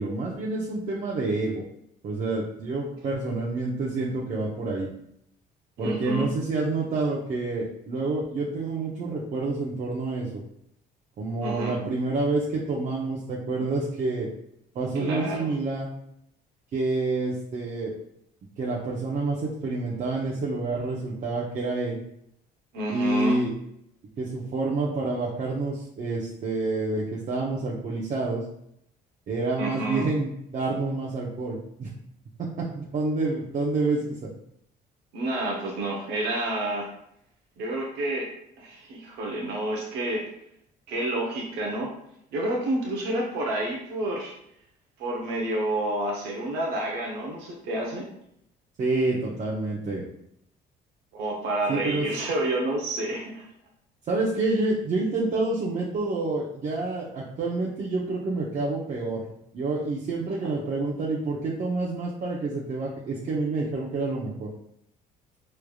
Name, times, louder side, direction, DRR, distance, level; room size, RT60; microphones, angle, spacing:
voice 1, 0.0-1.6 2.0-4.9 5.8-10.4 11.2-14.3 14.7-15.9 16.7-17.9 18.6-22.0 22.9-23.5 24.2-28.4 29.3-31.9 32.4-34.3 48.8-50.0 51.7-52.1 54.1-59.2 59.5-64.5, right 3 dB, 50° right, -4 dB, 0.8 m, -28 dB
voice 2, 5.8-6.3 11.4-11.7 14.9-15.5 22.7-23.4 29.6-30.1 35.1-36.9 37.6-38.3 38.6-40.3 40.9-41.9 42.3-44.3 45.0-48.1 51.1-53.4, right 1 dB, 85° right, -1 dB, 0.8 m, -29 dB
4.7 x 3.2 x 2.3 m, 0.74 s
cardioid pair, 110°, 17 cm